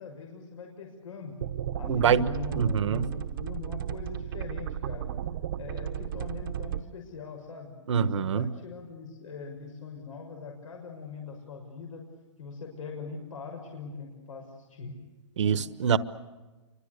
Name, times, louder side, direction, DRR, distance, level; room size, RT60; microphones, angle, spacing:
voice 1, 0.0-1.3 1.8-5.1 5.6-7.7 8.1-12.0 12.4-15.0 15.4-15.6, left 4 dB, 90° left, 1 dB, 6.5 m, -41 dB
sound 1, 1.4-6.8, right 10 dB, 45° right, 1.0 m, -34 dB
voice 2, 1.9-2.3 2.6-3.0 7.9-8.5 15.4-16.0, right 7 dB, 65° right, 14 dB, 1.3 m, -24 dB
28.0 x 24.5 x 6.8 m, 1.2 s
hypercardioid pair, 170°, 16 cm